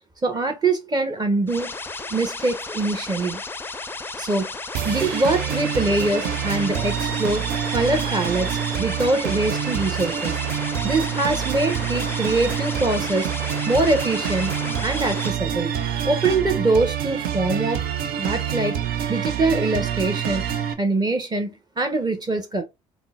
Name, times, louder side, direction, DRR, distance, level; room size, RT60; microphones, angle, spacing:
voice 1, 0.2-1.7 2.1-3.4 4.2-4.6 4.8-7.5 7.7-10.4 10.8-13.3 13.7-14.5 14.8-15.7 16.0-17.8 18.2-18.8 19.1-20.4 20.8-22.6, right 2 dB, 25° right, 0.9 m, -23 dB
sound 1, 1.5-15.3, left 3 dB, 15° left, 0.5 m, -34 dB
sound 2, 4.7-20.7, right 9 dB, 70° right, 0.5 m, -26 dB
3.6 x 2.1 x 2.4 m
hypercardioid pair, 60°, 16 cm